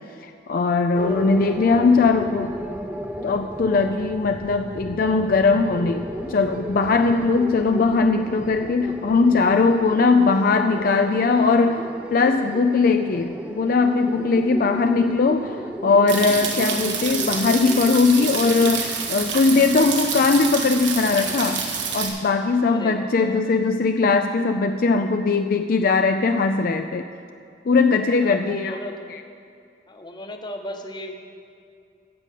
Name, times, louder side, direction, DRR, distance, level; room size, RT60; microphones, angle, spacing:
voice 1, 0.2-2.5 3.2-21.6 21.9-27.1 27.7-28.8, left 4 dB, 50° left, 6 dB, 0.4 m, -20 dB
sound 1, 0.9-18.7, equal, 10° right, 0.6 m, -34 dB
sound 2, 16.1-22.1, right 6 dB, 85° right, 1.7 m, -28 dB
voice 2, 22.7-23.7 28.2-29.1 29.9-31.1, left 1 dB, 25° left, 4 dB, 0.9 m, -36 dB
14.5 x 5.2 x 8.3 m, 2.5 s
head